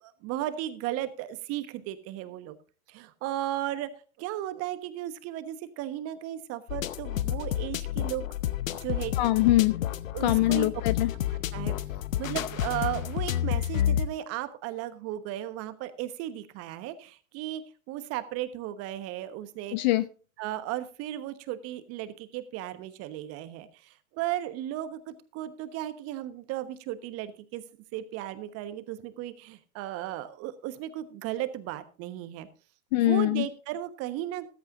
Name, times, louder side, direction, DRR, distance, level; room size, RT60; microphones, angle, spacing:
voice 1, 0.0-2.6 2.9-3.9 4.2-8.2 8.8-9.1 10.1-10.7 11.3-11.8 12.2-17.6 17.9-19.8 20.4-27.6 27.9-32.5 32.9-34.5, right 13 dB, 35° right, 12 dB, 1.2 m, -35 dB
sound 1, 6.7-14.1, left 11 dB, 70° left, 0.8 m, -30 dB
voice 2, 9.2-9.8 10.2-11.1 19.7-20.1 32.9-33.5, left 17 dB, 35° left, 17 dB, 0.4 m, -23 dB
14.0 x 13.0 x 2.6 m, 0.37 s
hypercardioid pair, 105°, 42 cm